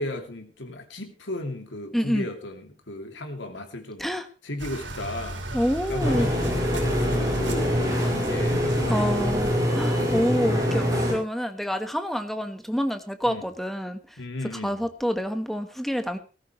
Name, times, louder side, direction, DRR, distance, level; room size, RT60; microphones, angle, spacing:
voice 1, 0.0-4.1 4.4-5.4 5.9-9.4 13.2-13.4 14.2-14.9, left 1 dB, 85° left, 5 dB, 2.8 m, -35 dB
voice 2, 1.9-2.3 4.0-4.3 5.5-6.3 8.9-14.0 14.6-16.2, equal, ahead, 8 dB, 1.3 m, -27 dB
sound 1, 4.6-9.6, right 1 dB, 90° right, 4.7 m, -35 dB
sound 2, 6.0-11.1, equal, 20° right, 5.0 m, -24 dB
18.0 x 14.0 x 3.2 m, 0.35 s
head